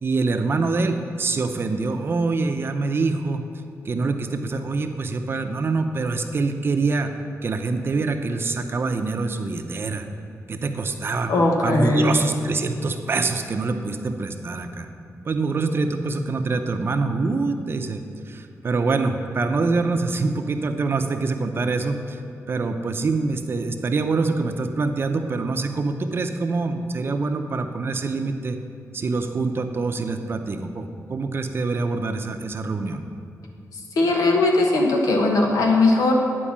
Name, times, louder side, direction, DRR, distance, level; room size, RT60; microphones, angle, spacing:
voice 1, 0.0-3.4 3.9-10.1 10.5-11.3 11.6-14.9 15.2-22.2 22.5-28.6 28.9-33.0, right 3 dB, 40° right, 6 dB, 0.6 m, -25 dB
voice 2, 11.3-12.2 33.7-36.1, left 2 dB, 85° left, 1 dB, 1.2 m, -19 dB
10.0 x 4.6 x 7.3 m, 2.5 s
wide cardioid pair, 120°, 6 cm